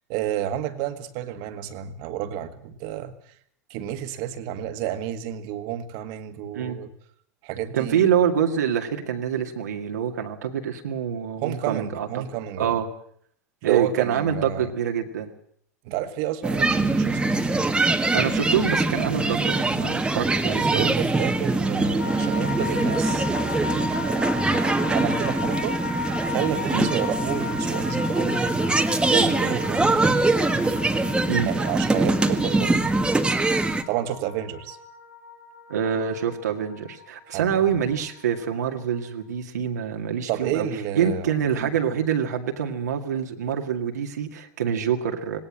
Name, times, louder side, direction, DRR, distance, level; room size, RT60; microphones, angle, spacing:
voice 1, 0.1-3.1 3.7-6.9 7.4-8.1 11.4-12.8 13.6-14.7 15.8-17.7 20.7-23.3 24.0-24.4 24.9-25.8 26.2-28.6 29.1-30.2 31.5-32.8 33.9-34.8 37.3-37.8 40.3-41.7, right 11 dB, 55° right, 9 dB, 2.0 m, -30 dB
voice 2, 7.7-12.2 12.6-12.9 13.6-15.3 18.1-20.7 26.7-26.9 31.3-31.5 35.7-40.7 41.0-45.4, right 8 dB, 80° right, 3 dB, 2.1 m, -26 dB
sound 1, 16.4-33.8, right 2 dB, 10° right, 1.7 m, -23 dB
sound 2, 22.0-38.3 38.6-38.7, left 5 dB, 90° left, 4.2 m, -35 dB
19.0 x 18.0 x 7.6 m, 0.66 s
hypercardioid pair, 85°, 9 cm